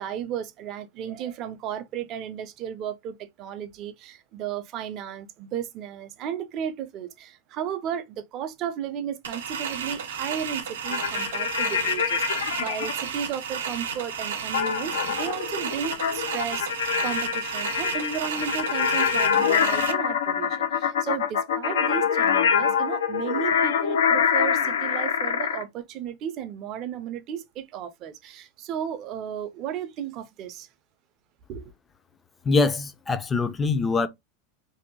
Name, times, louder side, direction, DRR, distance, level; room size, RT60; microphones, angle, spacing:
voice 1, 0.0-16.7 17.0-30.7 31.5-31.7, right 9 dB, 45° right, 0.5 m, -34 dB
sound 1, 9.2-19.9, right 7 dB, 85° right, 0.6 m, -33 dB
sound 2, 10.9-12.9 14.5-25.6, left 7 dB, 85° left, 0.5 m, -25 dB
voice 2, 32.5-34.1, left 4 dB, 20° left, 0.4 m, -23 dB
2.7 x 2.0 x 2.9 m
hypercardioid pair, 110°, 0 cm